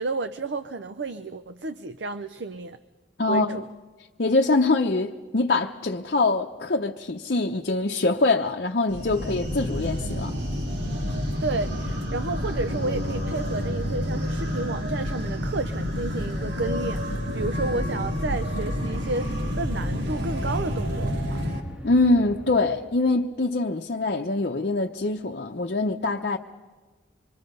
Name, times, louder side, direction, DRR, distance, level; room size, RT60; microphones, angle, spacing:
voice 1, 0.0-2.8 3.3-3.6 11.4-21.4, right 3 dB, 65° right, 0.6 m, -31 dB
voice 2, 3.2-3.6 4.2-10.3 21.8-26.4, left 3 dB, 55° left, 0.8 m, -24 dB
sound 1, 8.9-21.6, equal, 85° right, 2.5 m, -29 dB
sound 2, 17.6-23.4, equal, 10° right, 1.6 m, -42 dB
26.0 x 23.0 x 5.4 m
head